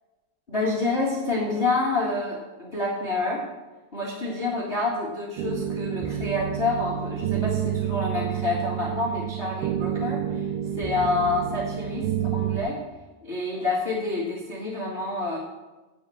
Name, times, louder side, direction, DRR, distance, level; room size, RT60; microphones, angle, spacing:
voice 1, 0.5-3.4 3.9-10.5 10.8-12.8 13.2-15.4, left 2 dB, 55° left, -4 dB, 0.6 m, -28 dB
sound 1, 5.4-12.6, right 10 dB, 80° right, 2.2 m, -29 dB
8.9 x 5.6 x 7.5 m, 1.2 s
omnidirectional pair, 4.2 m